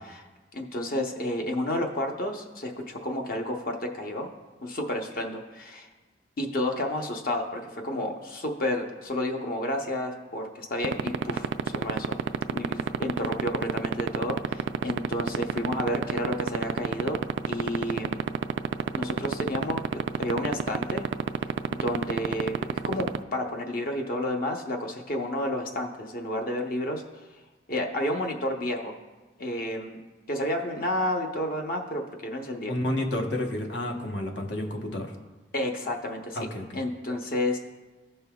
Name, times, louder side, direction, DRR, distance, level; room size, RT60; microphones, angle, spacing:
voice 1, 0.5-4.3 4.6-5.9 6.4-12.2 12.5-17.2 17.5-18.2 18.9-21.0 21.7-27.0 27.7-28.9 29.4-30.0 30.3-32.7 35.5-36.4 36.7-37.6, left 1 dB, 50° left, 2 dB, 0.8 m, -31 dB
sound 1, 10.8-23.2, right 7 dB, 75° right, 0.3 m, -25 dB
voice 2, 32.7-35.1 36.4-36.8, left 1 dB, 75° left, 2 dB, 1.0 m, -30 dB
15.0 x 5.4 x 2.3 m, 1.2 s
head